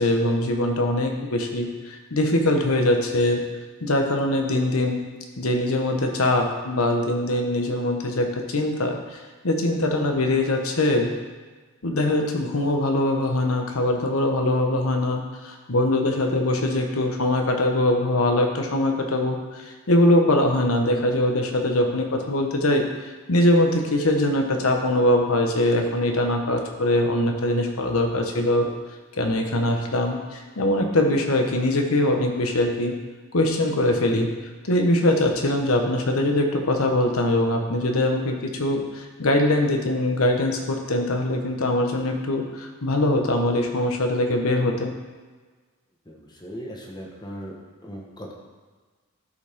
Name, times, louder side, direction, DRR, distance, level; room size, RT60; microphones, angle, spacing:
voice 1, 0.0-3.4 3.8-5.0 5.4-9.2 9.4-11.2 11.8-28.7 29.2-32.9 33.3-34.3 34.6-44.9, left 1 dB, 80° left, 3 dB, 1.1 m, -22 dB
voice 2, 46.1-47.6 47.8-48.3, equal, 20° left, -1 dB, 1.2 m, -38 dB
12.0 x 5.3 x 3.6 m, 1.4 s
head